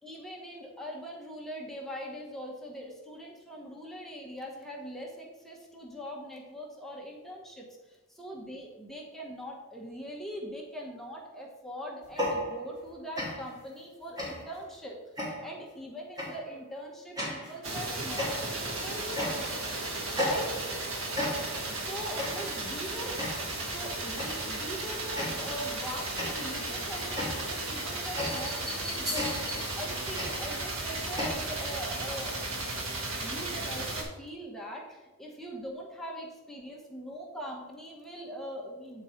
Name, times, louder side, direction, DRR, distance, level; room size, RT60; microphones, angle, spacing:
voice 1, 0.0-19.5 20.2-20.5 21.7-32.3 33.2-39.0, equal, ahead, -2 dB, 1.0 m, -42 dB
sound 1, 12.0-12.9 13.2-13.6 14.2-14.6 15.2-15.6 16.2-16.5 17.2-17.6 18.2-18.7 19.2-19.7 20.2-20.8 21.2-21.7 22.2-22.6 23.2-23.6 24.2-24.5 25.2-25.7 26.2-31.3, left 1 dB, 20° right, 1.8 m, -35 dB
sound 2, 17.6-34.0, right 2 dB, 70° right, 1.3 m, -35 dB
7.7 x 3.8 x 4.4 m, 1.1 s
head